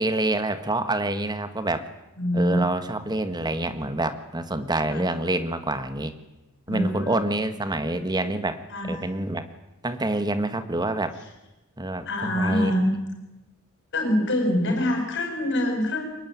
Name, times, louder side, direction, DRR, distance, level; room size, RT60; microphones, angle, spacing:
voice 1, 0.0-1.9 2.3-6.1 6.7-8.6 8.9-9.4 9.8-11.2 11.8-12.7, right 2 dB, 20° right, 10 dB, 1.6 m, -27 dB
voice 2, 2.2-2.6 4.9-5.0 6.7-7.1 8.7-8.9 12.1-12.9 13.9-16.0, left 1 dB, 55° left, 3 dB, 7.2 m, -24 dB
23.5 x 20.5 x 9.6 m, 0.99 s
head